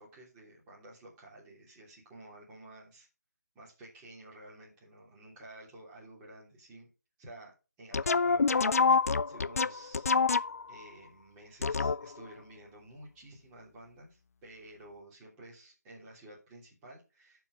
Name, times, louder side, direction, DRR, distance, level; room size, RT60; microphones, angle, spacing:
voice 1, 0.0-3.1 3.5-6.9 7.2-7.5 7.8-10.1 10.7-17.4, right 1 dB, 15° right, -5 dB, 3.4 m, -52 dB
sound 1, 7.9-10.8 11.6-12.3, left 4 dB, 60° left, 0.4 m, -27 dB
11.0 x 4.8 x 5.2 m, 0.31 s
figure-of-eight pair, 155°, 9 cm